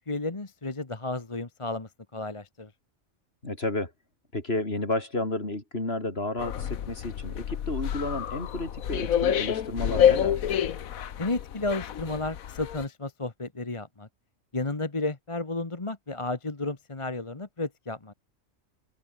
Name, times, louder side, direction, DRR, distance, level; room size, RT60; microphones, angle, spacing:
voice 1, 0.1-2.7 11.2-14.1 14.5-18.1, left 2 dB, 25° left, 1.4 m, -32 dB
voice 2, 3.4-3.9 4.3-10.4, left 2 dB, 45° left, 4.5 m, -31 dB
sound 1, 6.4-12.9, left 9 dB, 85° left, 1.4 m, -28 dB
omnidirectional pair, 1.4 m